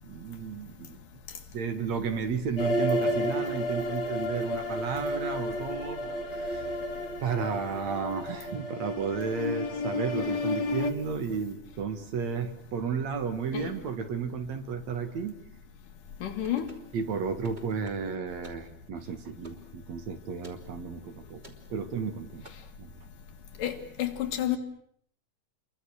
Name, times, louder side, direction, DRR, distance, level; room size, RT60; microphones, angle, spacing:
voice 1, 0.0-1.0 1.5-6.7 7.2-15.4 16.9-21.4 21.7-22.4 22.8-22.9, right 6 dB, 60° right, 2.9 m, -33 dB
sound 1, 2.6-10.9, left 1 dB, 60° left, 2.6 m, -31 dB
voice 2, 16.2-16.7 23.6-24.6, left 11 dB, 80° left, 3.6 m, -30 dB
sound 2, 16.4-16.9 17.4-18.1 18.4-18.7 19.4-19.7 20.4-20.6 21.4-21.6 22.4-22.5, equal, 15° right, 3.0 m, -49 dB
30.0 x 23.5 x 6.5 m
omnidirectional pair, 3.7 m